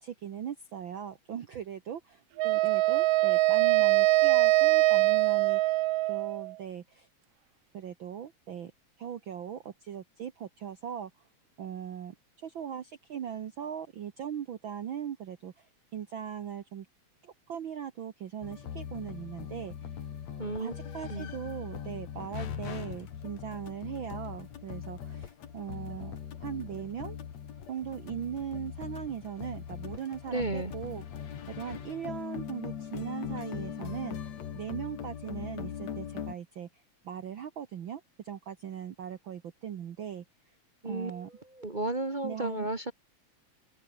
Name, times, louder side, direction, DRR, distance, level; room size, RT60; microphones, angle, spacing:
voice 1, 0.0-5.8 6.1-7.1 7.7-8.7 9.0-11.1 11.6-15.7 15.9-16.9 17.2-19.9 20.6-27.2 27.7-31.0 31.5-34.2 34.5-40.2 40.8-41.3 42.2-42.7, right 9 dB, 55° right, 1.6 m, -39 dB
Wind instrument woodwind instrument, 2.4-6.5, right 18 dB, 85° right, 1.4 m, -23 dB
sound 1, 18.4-36.3, left 8 dB, 65° left, 3.1 m, -40 dB
voice 2, 20.4-21.3 30.3-30.7 40.8-42.9, right 2 dB, 30° right, 0.8 m, -34 dB
open air
omnidirectional pair, 3.3 m